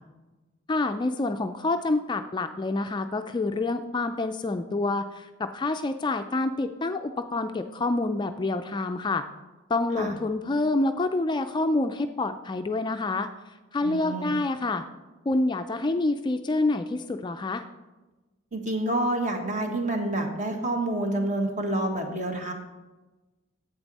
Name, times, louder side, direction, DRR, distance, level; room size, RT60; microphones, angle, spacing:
voice 1, 0.7-9.3 9.7-13.3 13.7-14.9 15.3-17.6, left 2 dB, 25° left, 8 dB, 0.3 m, -27 dB
voice 2, 13.8-14.3 18.5-22.5, right 1 dB, 40° right, 3 dB, 1.4 m, -28 dB
10.5 x 8.0 x 4.1 m, 1.2 s
head